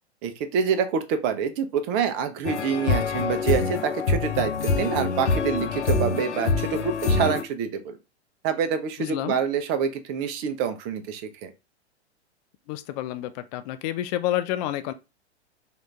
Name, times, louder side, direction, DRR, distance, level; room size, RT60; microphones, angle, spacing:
voice 1, 0.2-8.0 8.4-11.5, right 7 dB, 35° right, 0.7 m, -27 dB
sound 1, 2.4-7.4, left 4 dB, 85° left, 0.8 m, -25 dB
voice 2, 9.0-9.4 12.7-14.9, left 13 dB, 35° left, 0.5 m, -29 dB
3.7 x 2.5 x 3.3 m
hypercardioid pair, 110°, 34 cm